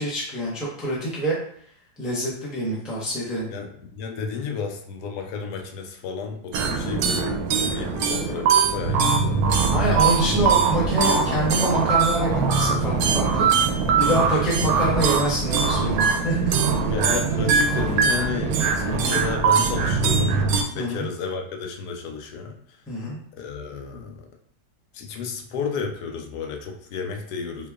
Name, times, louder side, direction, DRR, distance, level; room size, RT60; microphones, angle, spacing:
voice 1, 0.0-1.4 2.0-3.5 9.7-16.5 20.7-21.1 22.9-23.2, equal, ahead, -6 dB, 0.5 m, -26 dB
voice 2, 3.5-9.7 10.3-10.4 16.9-22.6 23.4-24.3 24.9-27.7, left 5 dB, 70° left, 3 dB, 1.1 m, -32 dB
sound 1, 6.5-20.6, right 5 dB, 70° right, 0.9 m, -21 dB
3.8 x 3.3 x 2.3 m, 0.63 s
omnidirectional pair, 1.9 m